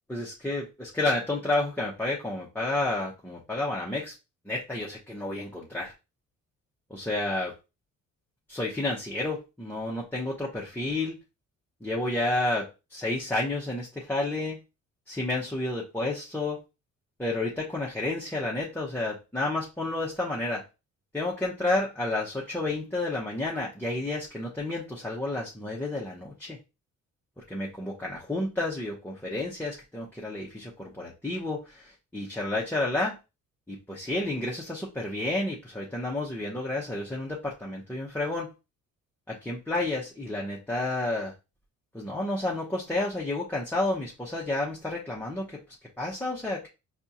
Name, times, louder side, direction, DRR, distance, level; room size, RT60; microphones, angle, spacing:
voice 1, 0.1-4.1 4.4-5.9 6.9-7.5 8.5-11.1 11.8-14.6 15.1-16.6 17.2-20.6 21.1-26.6 27.5-33.2 33.7-38.5 39.3-41.3 41.9-45.6 46.0-46.6, left 2 dB, 5° left, -5 dB, 0.9 m, -30 dB
4.3 x 2.5 x 2.7 m, 0.27 s
cardioid pair, 90°, 30 cm